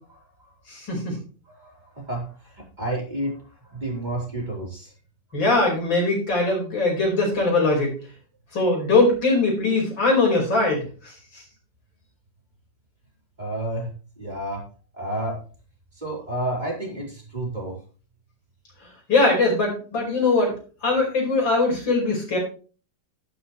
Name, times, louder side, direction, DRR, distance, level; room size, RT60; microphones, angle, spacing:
voice 1, 0.7-1.2 5.3-7.9 8.5-10.9 19.1-20.5 20.8-22.4, left 3 dB, 90° left, 0 dB, 5.7 m, -21 dB
voice 2, 1.5-4.9 13.4-14.6 14.9-15.4 15.9-17.8, right 1 dB, 20° right, -3 dB, 4.6 m, -31 dB
12.5 x 11.5 x 3.2 m, 0.38 s
omnidirectional pair, 2.0 m